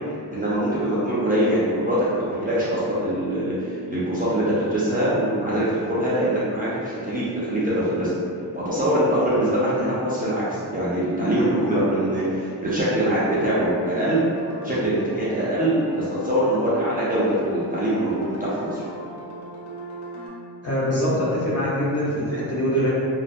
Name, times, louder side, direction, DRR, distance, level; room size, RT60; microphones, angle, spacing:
voice 1, 0.3-8.1 8.5-14.2 14.6-18.8, right 1 dB, 20° right, -10 dB, 0.4 m, -23 dB
sound 1, 12.9-20.3, equal, 80° left, 0.7 m, -36 dB
voice 2, 20.6-22.9, equal, 40° left, -8 dB, 0.6 m, -23 dB
2.4 x 2.3 x 2.5 m, 2.3 s
wide cardioid pair, 165°, 40 cm